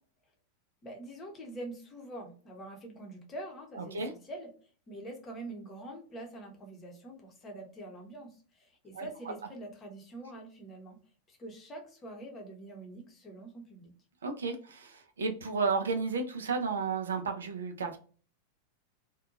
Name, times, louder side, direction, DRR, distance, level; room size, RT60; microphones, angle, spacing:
voice 1, 0.8-4.5 4.9-11.0 11.3-13.9, right 1 dB, 25° left, 1 dB, 0.8 m, -45 dB
voice 2, 14.2-18.0, right 4 dB, 70° right, 5 dB, 0.4 m, -32 dB
2.6 x 2.2 x 2.4 m, 0.41 s
figure-of-eight pair, 90°, 0 cm